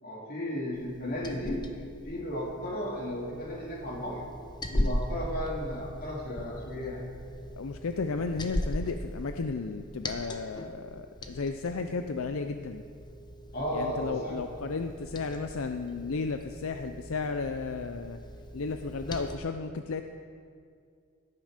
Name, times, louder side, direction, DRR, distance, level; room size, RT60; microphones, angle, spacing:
voice 1, 0.0-1.7 2.0-4.3 4.7-7.0 13.5-14.4, equal, 45° left, -2 dB, 2.8 m, -34 dB
Liquid, 0.7-19.4, left 1 dB, 20° left, 0.9 m, -39 dB
voice 2, 7.6-12.8 13.7-18.2 18.5-20.0, left 4 dB, 75° left, 7 dB, 0.6 m, -34 dB
17.5 x 10.5 x 5.1 m, 2.3 s
head